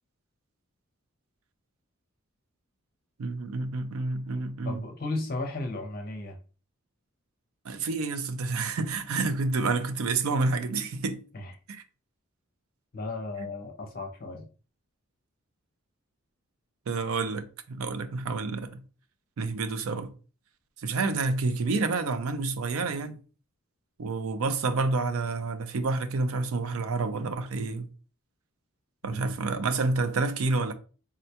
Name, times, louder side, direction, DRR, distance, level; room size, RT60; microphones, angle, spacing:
voice 1, 3.2-4.8 7.6-11.2 11.7-11.8 13.4-13.5 16.9-18.8 19.4-20.1 20.8-23.2 24.0-27.9 29.0-30.7, right 3 dB, 85° right, 0.4 m, -29 dB
voice 2, 4.6-6.4 11.3-11.5 12.9-14.5 29.0-29.3, left 2 dB, 45° left, 0.5 m, -35 dB
3.7 x 2.1 x 2.8 m
head